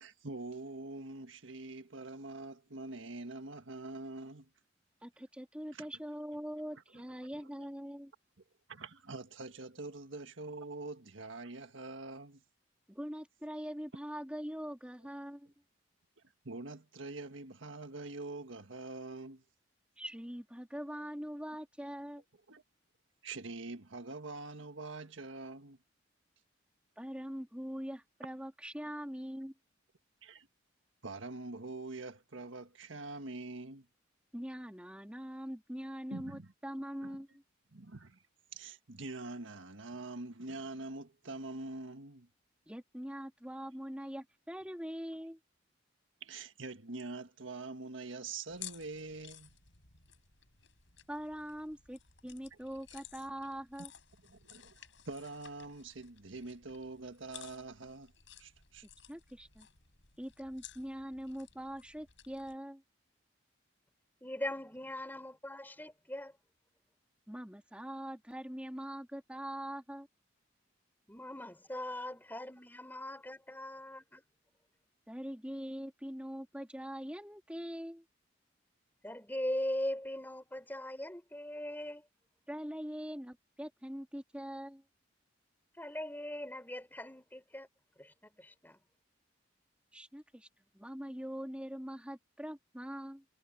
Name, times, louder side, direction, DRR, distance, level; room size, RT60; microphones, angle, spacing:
voice 1, 0.0-4.5 5.7-5.9 6.9-7.0 8.7-12.4 16.4-19.4 22.5-22.6 23.2-25.8 30.2-30.5 31.0-33.9 36.1-36.5 37.0-37.2 37.7-38.2 38.5-42.3 46.2-49.6 54.3-54.8 55.0-58.1 58.4-58.9, right 3 dB, 80° right, 1.6 m, -44 dB
voice 2, 5.0-8.1 12.9-15.5 20.0-22.2 27.0-29.5 34.3-37.4 42.7-45.4 51.1-53.9 58.8-59.7 60.2-62.8 67.3-70.1 75.1-78.0 82.5-84.8 89.9-90.5 90.7-93.2, equal, 5° right, 3.1 m, -43 dB
sound 1, 48.5-62.6, left 11 dB, 70° left, 7.3 m, -55 dB
voice 3, 64.2-66.3 71.1-74.2 79.0-82.1 85.8-87.7 88.0-88.8, left 1 dB, 10° left, 5.1 m, -40 dB
head